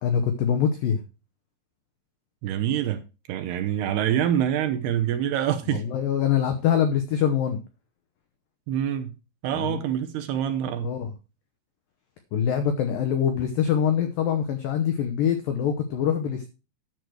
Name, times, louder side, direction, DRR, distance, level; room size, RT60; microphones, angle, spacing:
voice 1, 0.0-1.0 5.7-7.6 9.5-9.8 10.8-11.1 12.3-16.5, left 8 dB, 90° left, 2.0 m, -24 dB
voice 2, 2.4-3.0 3.3-5.8 8.7-9.1 9.4-10.9, right 10 dB, 75° right, 2.6 m, -26 dB
10.5 x 6.5 x 4.7 m
omnidirectional pair, 5.2 m